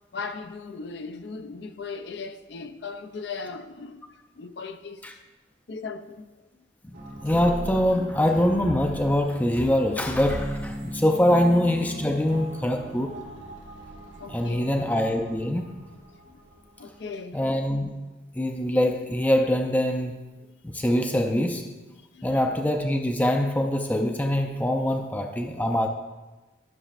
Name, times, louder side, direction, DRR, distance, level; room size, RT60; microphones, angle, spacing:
voice 1, 0.1-4.0 4.4-5.0 5.7-6.3 14.2-14.7 16.3-16.4 16.8-17.4 22.1-22.3 24.7-24.9, left 4 dB, 65° left, 0.4 m, -37 dB
sound 1, 6.9-17.1, right 1 dB, 85° right, 1.4 m, -40 dB
voice 2, 7.2-13.2 14.3-15.6 17.3-17.9 18.4-20.2 20.6-21.6 22.2-25.9, left 1 dB, 10° left, 0.4 m, -24 dB
13.0 x 6.4 x 2.5 m
head